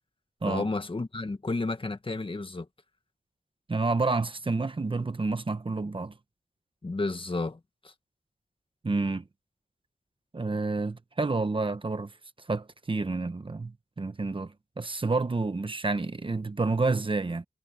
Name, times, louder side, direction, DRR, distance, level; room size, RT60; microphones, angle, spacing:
voice 1, 0.5-2.7 6.8-7.6 7.8-7.9, left 3 dB, 35° left, 1.7 m, -31 dB
voice 2, 3.7-6.1 8.8-9.2 10.3-12.1 12.5-17.4, right 3 dB, 35° right, 1.1 m, -29 dB
wide cardioid pair, 75°, 15 cm